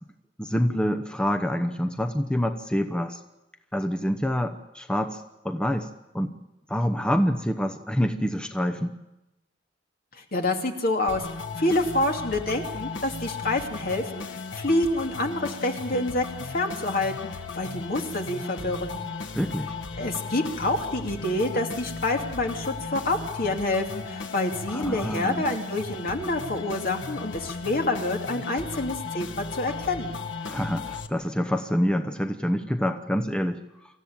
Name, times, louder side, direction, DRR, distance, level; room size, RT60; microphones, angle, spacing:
voice 1, 0.4-3.2 3.7-5.9 6.1-6.3 6.7-8.9 19.3-19.7 24.7-25.5 30.5-33.6, equal, 5° left, 6 dB, 0.9 m, -26 dB
voice 2, 10.3-11.2 11.6-19.0 20.0-30.2, left 2 dB, 55° left, 3 dB, 2.8 m, -27 dB
sound 1, 11.1-31.1, left 4 dB, 85° left, 1.5 m, -36 dB
26.5 x 14.5 x 8.8 m, 0.98 s
head